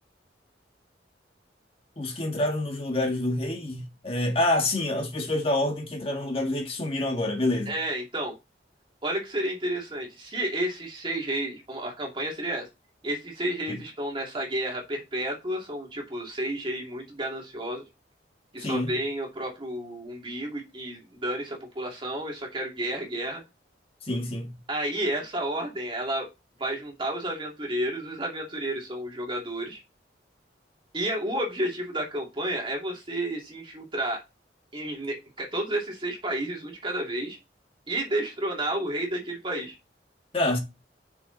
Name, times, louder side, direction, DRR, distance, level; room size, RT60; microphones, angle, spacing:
voice 1, 2.0-7.7 13.7-13.8 18.6-18.9 24.0-24.5 40.3-40.6, left 1 dB, 35° left, 1.7 m, -27 dB
voice 2, 7.7-8.3 9.0-12.7 13.0-17.8 18.5-23.4 24.7-26.3 26.6-29.8 30.9-34.2 34.7-37.4 37.9-39.8, right 1 dB, 30° right, 2.6 m, -31 dB
7.0 x 6.3 x 4.0 m
head